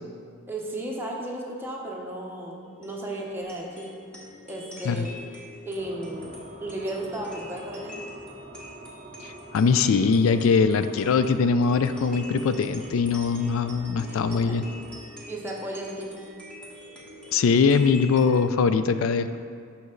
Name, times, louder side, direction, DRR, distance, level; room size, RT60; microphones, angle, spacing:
voice 1, 0.5-4.0 4.4-5.1 5.6-7.9 14.0-14.6 15.3-16.2, right 1 dB, 10° right, -2 dB, 0.9 m, -34 dB
sound 1, 2.6-18.4, left 1 dB, 5° left, 1.4 m, -45 dB
sound 2, 5.8-15.0, right 1 dB, 35° right, 0.6 m, -47 dB
voice 2, 9.2-14.6 17.3-19.4, left 5 dB, 80° left, 11 dB, 0.3 m, -22 dB
8.0 x 5.9 x 3.8 m, 2.3 s
head